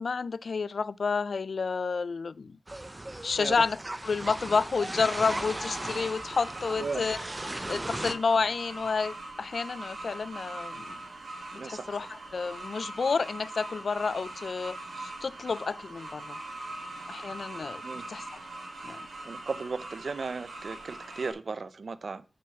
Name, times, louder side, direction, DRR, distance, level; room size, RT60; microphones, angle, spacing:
voice 1, 0.0-2.6 3.2-7.2 7.5-11.0 11.6-16.4 17.1-17.8 18.1-18.4 18.8-19.0, left 4 dB, 65° left, 0.4 m, -30 dB
sound 1, 2.7-8.1, right 1 dB, 20° right, 0.7 m, -37 dB
sound 2, 5.1-21.3, right 2 dB, 85° right, 3.0 m, -42 dB
voice 2, 11.6-11.9 17.2-17.3 17.8-18.1 19.2-22.2, right 4 dB, 60° right, 0.7 m, -36 dB
6.9 x 6.4 x 7.0 m
wide cardioid pair, 120°, 0 cm